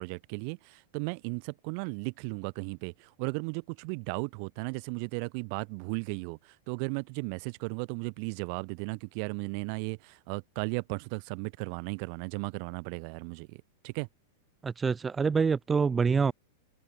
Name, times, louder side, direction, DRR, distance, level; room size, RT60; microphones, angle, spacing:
voice 1, 0.0-14.1, right 40 dB or more, 45° right, 0.8 m, -36 dB
voice 2, 14.6-16.3, right 5 dB, 15° right, 0.5 m, -26 dB
supercardioid pair, 150°, 0 cm